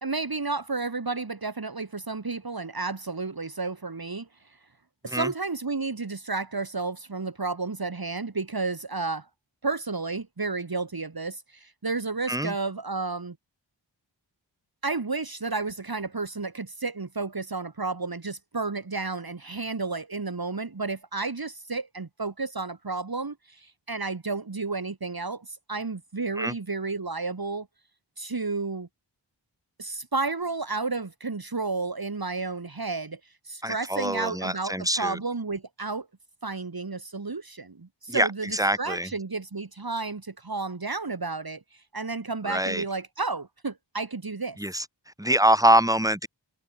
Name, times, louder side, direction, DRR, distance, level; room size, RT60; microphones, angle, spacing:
voice 1, 0.0-4.3 5.0-9.3 9.6-13.4 14.8-27.7 28.2-28.9 29.8-33.2 33.4-36.1 36.4-44.6, right 3 dB, 50° right, 2.2 m, -32 dB
voice 2, 33.6-35.2 38.1-39.1 42.4-42.8 44.6-44.9 45.2-46.3, right 1 dB, 10° right, 4.2 m, -24 dB
wide cardioid pair, 50°, 45 cm